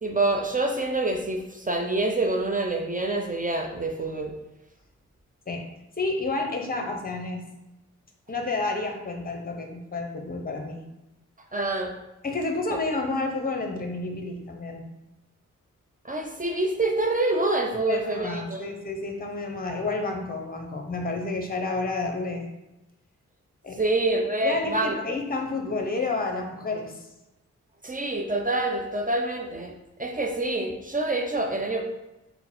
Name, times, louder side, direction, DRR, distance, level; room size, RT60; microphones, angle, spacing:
voice 1, 0.0-4.3 11.5-11.9 16.0-18.6 23.8-25.0 27.8-29.7 30.0-31.8, right 2 dB, 25° right, 2 dB, 0.7 m, -26 dB
voice 2, 6.0-7.5 8.3-10.8 12.2-14.9 17.8-22.5 23.6-23.8 24.4-27.1, left 3 dB, 25° left, 3 dB, 0.9 m, -30 dB
3.8 x 2.2 x 4.3 m, 0.96 s
supercardioid pair, 45°, 33 cm